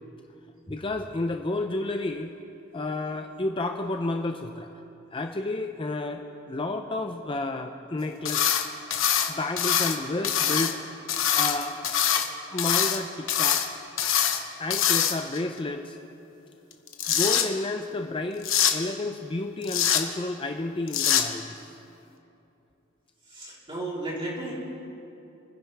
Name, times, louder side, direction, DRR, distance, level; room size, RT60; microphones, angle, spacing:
voice 1, 0.7-2.3 2.7-4.7 5.1-6.2 6.5-8.5 9.3-10.8 11.3-11.8 12.5-13.6 14.6-16.0 17.1-21.7, left 2 dB, 25° left, 5 dB, 0.5 m, -31 dB
sound 1, 8.2-8.6 8.9-10.0 10.2-10.7 11.1-12.3 12.6-13.0 13.3-13.7 14.0-14.4 14.7-15.4 16.7-17.4 18.4-18.7 19.6-20.0 20.9-21.2, left 9 dB, 75° left, 1.1 m, -23 dB
voice 2, 23.3-24.5, right 2 dB, 25° right, -6 dB, 3.8 m, -34 dB
28.5 x 10.5 x 3.5 m, 2.8 s
head